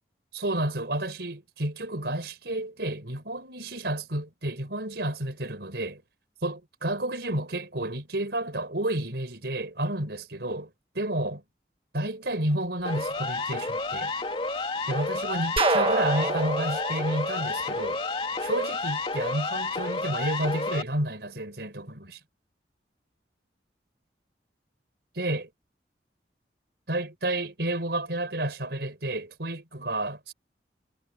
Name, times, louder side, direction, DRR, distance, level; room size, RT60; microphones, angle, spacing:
voice 1, 0.3-6.0 6.4-11.4 11.9-14.1 14.9-18.0 18.4-22.2 25.2-25.5 26.9-30.3, right 1 dB, 70° right, 4.2 m, -31 dB
Siren, 12.8-20.8, left 3 dB, 30° left, 2.7 m, -30 dB
sound 1, 15.6-18.4, right 2 dB, 30° right, 1.2 m, -27 dB
head